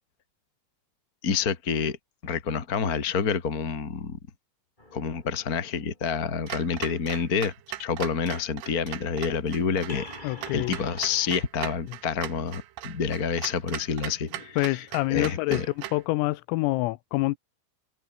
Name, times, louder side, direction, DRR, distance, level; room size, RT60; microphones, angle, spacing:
voice 1, 1.2-2.0 2.2-4.2 4.9-7.5 7.8-15.7, left 6 dB, 45° left, 1.1 m, -28 dB
sound 1, 4.8-6.8 9.9-11.5, left 1 dB, 10° left, 6.1 m, -46 dB
Clock, 6.5-16.1, right 14 dB, 70° right, 2.9 m, -39 dB
voice 2, 10.2-10.7 11.9-12.0 14.6-15.6 15.9-17.4, left 20 dB, 90° left, 3.5 m, -26 dB
omnidirectional pair, 5.9 m